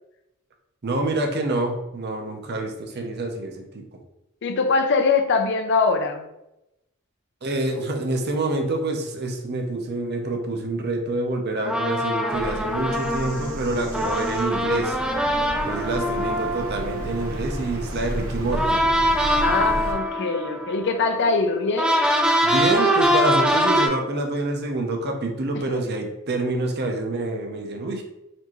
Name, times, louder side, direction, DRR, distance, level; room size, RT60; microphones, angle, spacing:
voice 1, 0.8-3.8 7.4-15.0 15.6-18.8 22.4-28.0, right 2 dB, 50° right, 3 dB, 0.7 m, -27 dB
voice 2, 4.4-6.3 19.4-22.0 25.5-25.8, left 4 dB, 60° left, 7 dB, 0.5 m, -22 dB
sound 1, 11.6-18.0 18.5-23.9, equal, 5° right, 0.4 m, -23 dB
Bird vocalization bird call bird song, 12.3-19.9, right 1 dB, 80° right, 0.8 m, -33 dB
4.3 x 2.7 x 3.0 m, 0.90 s
head